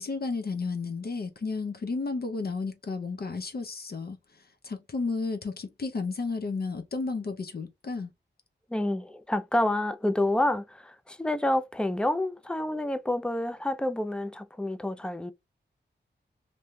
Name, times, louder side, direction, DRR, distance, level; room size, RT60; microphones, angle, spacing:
voice 1, 0.0-8.1, left 4 dB, 55° left, 0.5 m, -33 dB
voice 2, 8.7-15.3, left 1 dB, 5° left, 0.3 m, -28 dB
2.6 x 2.2 x 3.0 m
wide cardioid pair, 80°, 19 cm